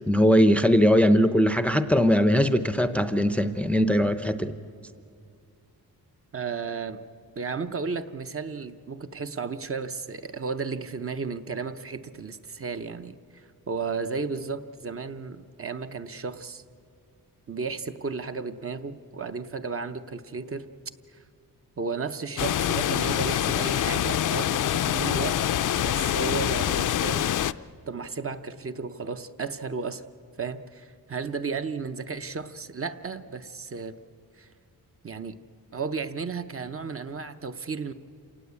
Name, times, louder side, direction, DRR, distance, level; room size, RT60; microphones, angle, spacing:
voice 1, 0.0-4.5, equal, 5° left, 11 dB, 0.6 m, -20 dB
voice 2, 6.3-7.0 7.4-16.6 17.5-20.7 21.1-21.2 21.8-25.4 25.8-27.3 27.9-30.0 30.4-34.0 34.4-34.5 35.0-35.4 35.7-37.9, right 5 dB, 35° right, 9 dB, 0.8 m, -33 dB
sound 1, 22.4-27.5, left 11 dB, 55° left, 0.5 m, -25 dB
27.5 x 18.0 x 8.3 m, 2.4 s
wide cardioid pair, 140°, 37 cm